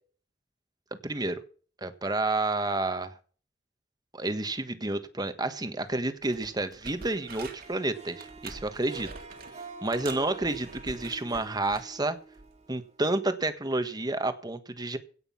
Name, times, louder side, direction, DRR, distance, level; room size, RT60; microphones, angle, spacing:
voice 1, 0.9-1.4 1.8-3.1 4.1-9.1 9.8-12.2 12.7-15.0, right 2 dB, 25° right, 10 dB, 1.5 m, -30 dB
sound 1, 5.8-5.9 6.2-7.8 8.2-9.5 9.9-11.9 12.4-12.6, right 3 dB, 55° right, 2.8 m, -46 dB
Harp, 7.0-13.3, right 4 dB, 40° right, 2.2 m, -47 dB
17.0 x 6.5 x 7.3 m, 0.41 s
head